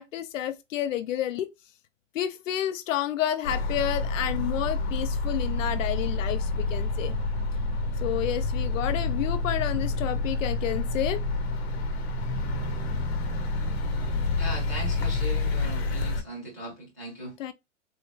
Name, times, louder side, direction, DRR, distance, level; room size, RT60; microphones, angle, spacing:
voice 1, 0.0-1.5 2.1-7.1 8.0-11.2 17.4-17.5, left 11 dB, 90° left, 0.5 m, -30 dB
sound 1, 3.4-16.2, left 3 dB, 55° left, 0.8 m, -28 dB
voice 2, 14.4-17.4, right 1 dB, 15° right, 0.4 m, -38 dB
3.8 x 2.1 x 3.0 m
hypercardioid pair, 180°, 37 cm